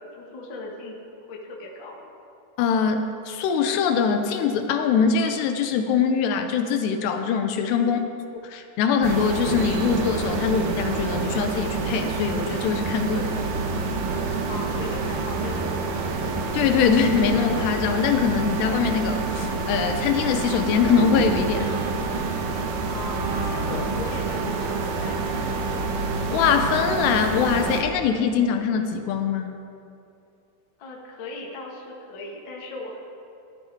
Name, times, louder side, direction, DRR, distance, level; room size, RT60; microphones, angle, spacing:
voice 1, 0.0-2.0 7.8-8.1 14.4-16.0 22.9-25.9 30.8-33.0, left 2 dB, 60° left, -2 dB, 1.3 m, -37 dB
voice 2, 2.6-8.0 8.4-13.4 16.5-21.8 26.3-29.5, left 6 dB, 80° left, 6 dB, 2.8 m, -23 dB
sound 1, 9.0-27.8, right 4 dB, 70° right, 2.3 m, -27 dB
16.0 x 12.0 x 4.6 m, 2.6 s
omnidirectional pair, 5.1 m